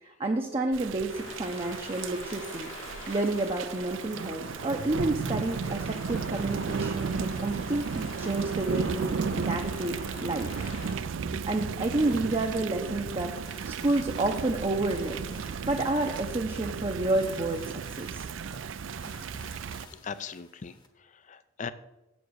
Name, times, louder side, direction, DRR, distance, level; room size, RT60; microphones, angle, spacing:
voice 1, 0.0-2.7 3.1-10.7 11.4-13.3 13.7-18.3, right 2 dB, 25° right, 2 dB, 0.6 m, -30 dB
Thunder / Rain, 0.7-19.9, right 5 dB, 65° right, 0.4 m, -35 dB
sound 1, 1.1-10.9, left 2 dB, 75° left, 1.9 m, -45 dB
sound 2, 11.9-20.9, left 2 dB, 20° left, 1.0 m, -51 dB
voice 2, 20.0-21.7, left 6 dB, 35° left, 14 dB, 0.5 m, -39 dB
7.6 x 7.1 x 6.3 m, 0.96 s
head